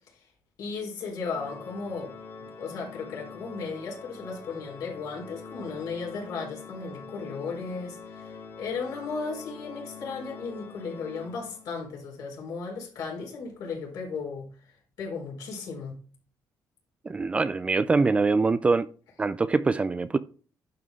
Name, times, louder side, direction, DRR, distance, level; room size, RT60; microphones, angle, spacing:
voice 1, 0.6-2.1 2.4-16.0, left 4 dB, 65° left, 4.2 m, -36 dB
Organ, 1.2-11.9, left 5 dB, 40° left, 3.3 m, -45 dB
voice 2, 17.1-18.9 19.2-20.2, right 4 dB, 20° right, 0.3 m, -24 dB
11.0 x 5.7 x 3.6 m
cardioid pair, 165°, 7 cm